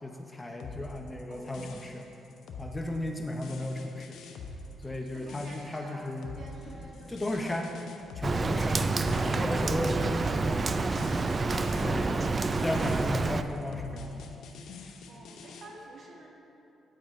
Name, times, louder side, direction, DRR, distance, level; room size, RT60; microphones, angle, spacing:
voice 1, 0.0-2.1 2.6-4.2 4.8-6.3 7.1-7.7 8.2-8.9 9.1-10.7 11.5-12.2 12.6-14.5, left 1 dB, 15° left, 3 dB, 0.7 m, -35 dB
sound 1, 0.6-15.7, left 3 dB, 75° left, 0.7 m, -45 dB
sound 2, 4.8-5.3 6.3-7.4 8.0-9.7 10.1-11.4, left 2 dB, 55° left, 1.4 m, -53 dB
voice 2, 5.1-7.8 15.1-16.3, right 2 dB, 50° right, -2 dB, 1.6 m, -50 dB
Rain, 8.2-13.4, right 3 dB, 30° right, 0.3 m, -28 dB
9.6 x 8.6 x 3.2 m, 2.8 s
cardioid pair, 90°, 0 cm